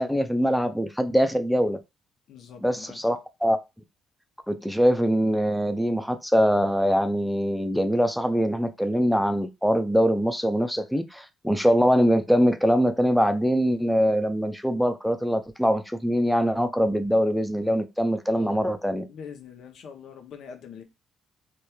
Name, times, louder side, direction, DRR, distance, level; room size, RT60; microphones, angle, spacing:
voice 1, 0.0-1.8 2.6-3.6 4.5-19.1, equal, ahead, 0.3 m, -23 dB
voice 2, 2.3-3.0 18.3-18.6 19.1-20.8, left 6 dB, 75° left, 0.5 m, -43 dB
2.8 x 2.2 x 2.2 m
cardioid pair, 90°, 0 cm